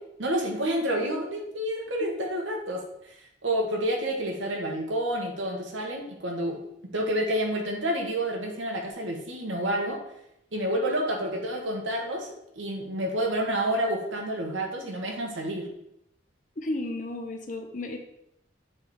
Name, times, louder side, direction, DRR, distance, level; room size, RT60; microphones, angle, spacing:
voice 1, 0.2-3.2 3.4-6.6 6.9-10.0 10.5-15.7, right 1 dB, 80° right, 1 dB, 1.3 m, -29 dB
voice 2, 16.6-18.0, left 2 dB, 40° left, 4 dB, 0.8 m, -33 dB
6.8 x 3.5 x 4.3 m, 0.78 s
head